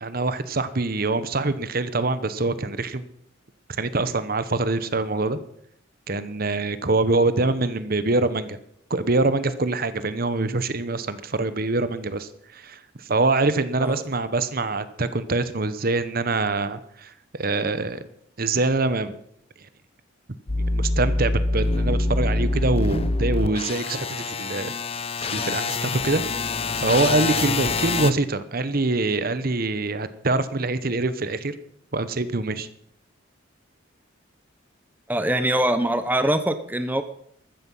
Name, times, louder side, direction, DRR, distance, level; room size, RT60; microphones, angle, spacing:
voice 1, 0.0-3.1 3.8-5.4 6.1-8.6 8.9-18.0 18.4-19.2 20.7-24.7 25.2-26.2 26.7-31.5 31.9-32.7, right 3 dB, 50° right, 13 dB, 1.0 m, -24 dB
sound 1, 20.5-28.1, left 3 dB, 30° left, 0.7 m, -25 dB
voice 2, 35.1-37.0, right 1 dB, 10° right, 9 dB, 0.9 m, -23 dB
14.5 x 13.5 x 5.6 m, 0.69 s
head